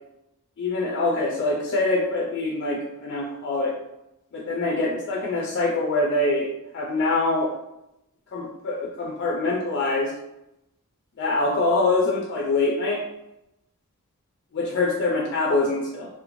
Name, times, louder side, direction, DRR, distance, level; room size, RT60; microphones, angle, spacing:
voice 1, 0.6-3.7 4.3-6.5 6.7-7.5 8.3-10.1 11.2-13.0 14.5-16.1, left 2 dB, 50° left, -2 dB, 0.4 m, -24 dB
2.6 x 2.1 x 2.9 m, 0.87 s
head